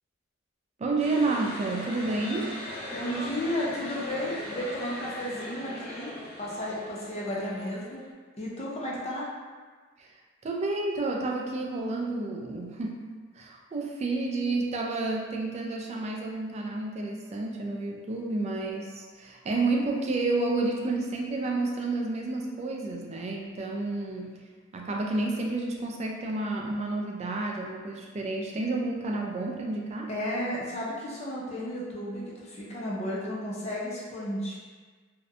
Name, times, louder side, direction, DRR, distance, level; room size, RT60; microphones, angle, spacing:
voice 1, 0.8-2.5 10.0-10.1 10.4-13.0 13.4-24.4 24.7-30.1, right 2 dB, 35° right, 0 dB, 0.3 m, -30 dB
sound 1, 1.0-8.1, left 1 dB, 80° left, 1.1 m, -40 dB
voice 2, 2.9-8.0 8.4-9.3 30.1-34.6, left 1 dB, 35° left, -5 dB, 0.5 m, -33 dB
2.6 x 2.1 x 2.4 m, 1.5 s
head